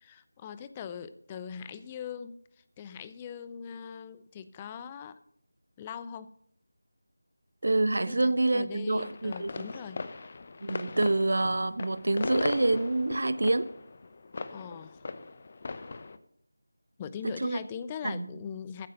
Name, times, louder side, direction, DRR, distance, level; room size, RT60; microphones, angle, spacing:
voice 1, 0.0-2.4 2.8-5.2 5.8-6.3 8.0-10.0 14.5-15.1 17.0-18.9, left 7 dB, 15° left, 14 dB, 0.4 m, -41 dB
voice 2, 7.6-9.7 10.6-13.7 17.2-17.6 18.0-18.3, right 2 dB, 65° right, 15 dB, 0.9 m, -27 dB
sound 1, 9.0-16.2, left 3 dB, 35° left, 0.8 m, -39 dB
14.0 x 8.6 x 6.6 m, 0.65 s
figure-of-eight pair, 170°, 0 cm